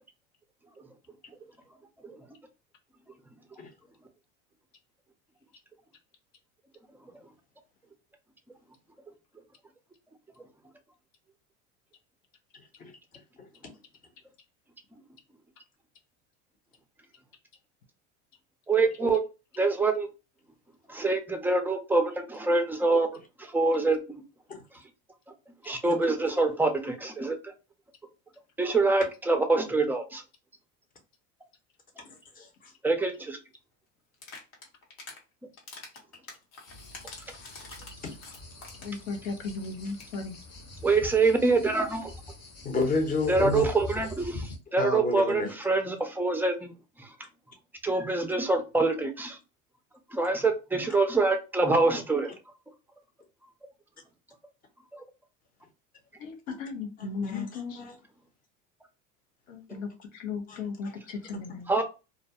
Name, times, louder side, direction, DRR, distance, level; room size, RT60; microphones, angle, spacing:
voice 1, 18.7-19.2 19.6-20.1 20.9-23.1 23.4-24.2 25.6-27.5 28.6-30.2 32.8-33.4 40.8-42.1 43.3-46.7 47.0-47.1 47.8-49.4 50.1-52.3 54.9-55.0 61.7-61.8, right 3 dB, 5° right, 0.4 m, -25 dB
voice 2, 32.1-32.7 38.0-38.1 42.6-43.7 44.8-45.5 57.0-57.9 59.7-59.8 60.5-60.6 61.3-61.4, left 3 dB, 20° left, 0.8 m, -31 dB
sound 1, 34.1-35.2 35.6-39.0 39.3-39.4 39.6-39.7 39.9-40.2, left 3 dB, 65° left, 1.2 m, -46 dB
sound 2, 36.7-44.6, left 2 dB, 40° left, 1.0 m, -43 dB
voice 3, 38.8-40.4 56.2-57.9 59.5-61.7, left 4 dB, 80° left, 0.8 m, -36 dB
2.4 x 2.1 x 2.7 m
hypercardioid pair, 95°, 38 cm